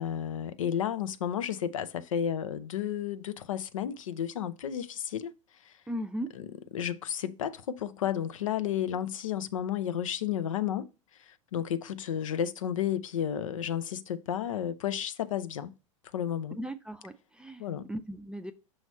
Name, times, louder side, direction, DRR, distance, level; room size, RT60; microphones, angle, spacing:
voice 1, 0.0-5.3 5.7-5.8 6.3-6.5 6.7-10.9 11.3-15.7 16.1-16.6 17.6-17.9, left 9 dB, 75° left, 0.6 m, -32 dB
voice 2, 5.9-6.3 16.5-17.6 17.9-18.5, equal, 5° right, 0.5 m, -37 dB
6.3 x 2.9 x 5.4 m
hypercardioid pair, 90°, 17 cm